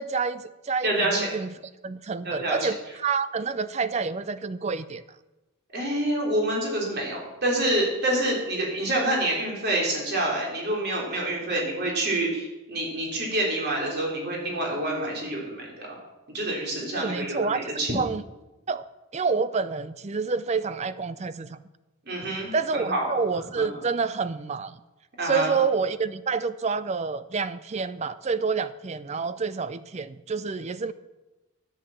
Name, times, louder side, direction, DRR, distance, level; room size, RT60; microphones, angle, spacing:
voice 1, 0.0-1.5 1.8-5.0 16.9-18.2 18.7-18.9 19.1-21.6 22.5-24.8 25.2-30.9, right 5 dB, 30° right, 15 dB, 0.4 m, -28 dB
voice 2, 0.8-1.3 2.2-2.7 5.7-15.9 16.3-17.9 22.1-23.1 23.6-23.7 25.2-25.5, right 1 dB, 45° right, -2 dB, 3.6 m, -27 dB
10.5 x 8.1 x 7.3 m, 1.0 s
head